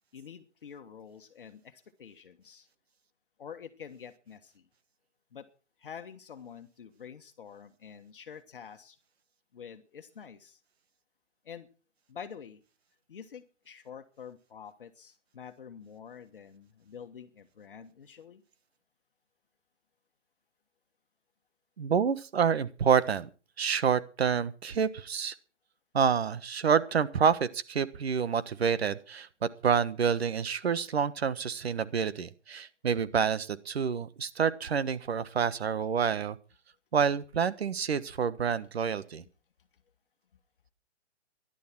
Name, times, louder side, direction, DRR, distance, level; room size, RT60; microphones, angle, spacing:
voice 1, 0.1-2.7 3.4-4.6 5.3-5.5 5.8-9.0 9.5-10.6 11.4-11.7 12.1-12.6 13.1-18.4, left 7 dB, 50° left, 7 dB, 1.4 m, -47 dB
voice 2, 21.8-23.3 23.6-25.3 25.9-36.4 36.9-39.2, right 7 dB, 60° right, 16 dB, 1.4 m, -28 dB
15.0 x 11.5 x 6.0 m, 0.37 s
hypercardioid pair, 175°, 35 cm